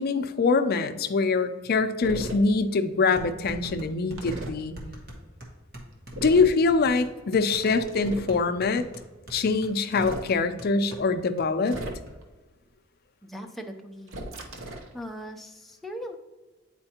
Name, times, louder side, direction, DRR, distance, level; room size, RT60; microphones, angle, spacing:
voice 1, 0.0-4.8 6.2-8.9 9.3-11.8, left 4 dB, 50° left, 9 dB, 0.5 m, -24 dB
sound 1, 2.0-2.4 4.2-4.5 6.1-6.6 7.5-8.3 9.8-10.3 11.6-12.2 14.1-14.9, right 1 dB, 70° right, 0.8 m, -36 dB
sound 2, 3.1-11.1 11.4-11.5 11.8-12.1, equal, 50° right, 1.2 m, -43 dB
voice 2, 13.2-14.6 14.9-16.2, equal, ahead, 2 dB, 0.5 m, -40 dB
8.7 x 4.4 x 2.8 m, 1.2 s
head